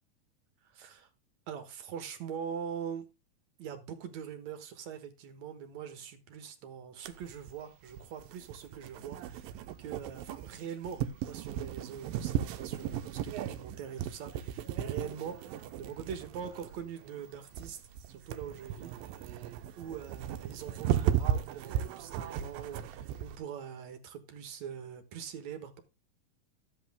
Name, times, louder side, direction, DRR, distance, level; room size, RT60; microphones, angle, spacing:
voice 1, 0.7-1.1 1.5-3.1 3.6-9.5 9.8-17.8 18.1-18.9 19.8-25.8, right 8 dB, 60° right, 2.3 m, -43 dB
sound 1, 7.1-23.4, right 10 dB, 90° right, 2.5 m, -36 dB
13.0 x 8.3 x 3.5 m
omnidirectional pair, 4.0 m